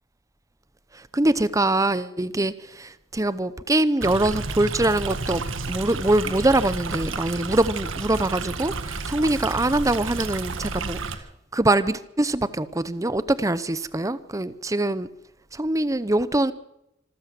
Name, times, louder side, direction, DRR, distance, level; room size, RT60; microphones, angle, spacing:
voice 1, 0.9-2.5 3.1-5.4 5.7-11.2 11.5-15.1 15.5-16.5, right 2 dB, 15° right, 15 dB, 0.7 m, -23 dB
Stream, 4.0-11.1, right 3 dB, 85° right, 1.7 m, -31 dB
25.5 x 14.0 x 7.7 m, 0.84 s
head